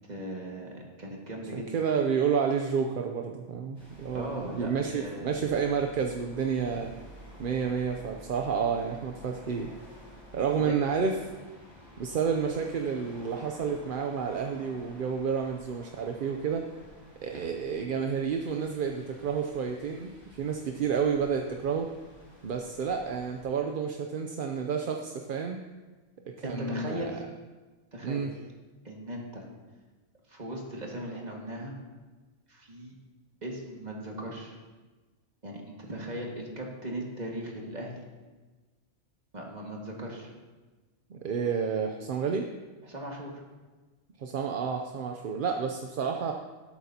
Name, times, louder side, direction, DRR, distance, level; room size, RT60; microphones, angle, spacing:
voice 1, 0.1-1.7 4.1-5.4 10.6-10.7 26.4-27.2 27.9-28.3 28.8-29.5 30.3-31.7 32.5-32.9 33.4-34.6 35.4-38.0 39.3-40.3 42.8-43.4, right 1 dB, 35° right, -1 dB, 1.9 m, -38 dB
voice 2, 1.5-6.9 7.4-9.7 10.3-11.2 12.0-16.6 17.2-20.1 20.4-21.9 22.4-25.6 26.4-27.1 28.0-28.3 41.1-42.5 44.2-46.3, right 6 dB, 55° right, 3 dB, 0.7 m, -30 dB
sound 1, 3.8-23.4, equal, 35° left, 4.3 m, -51 dB
18.5 x 8.3 x 2.8 m, 1.3 s
omnidirectional pair, 1.2 m